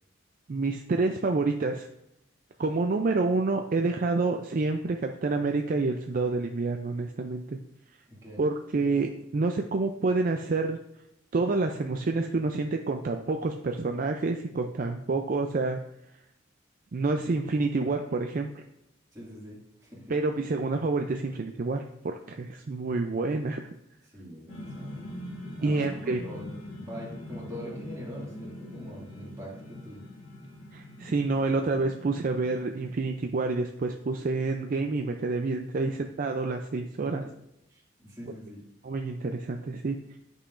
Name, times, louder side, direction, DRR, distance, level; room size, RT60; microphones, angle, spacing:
voice 1, 0.5-1.9 2.6-7.6 8.4-10.8 11.3-15.8 16.9-18.6 20.1-23.6 25.6-26.2 30.7-37.2 38.8-40.0, right 3 dB, 45° right, 4 dB, 0.4 m, -28 dB
voice 2, 8.1-8.5 19.1-20.2 24.1-25.1 25.6-30.0 35.8-36.1 37.0-37.3 37.7-38.6, equal, 20° right, -5 dB, 2.2 m, -44 dB
sound 1, 24.5-33.1, left 1 dB, 90° left, 1.9 m, -43 dB
9.9 x 5.6 x 2.5 m, 0.81 s
head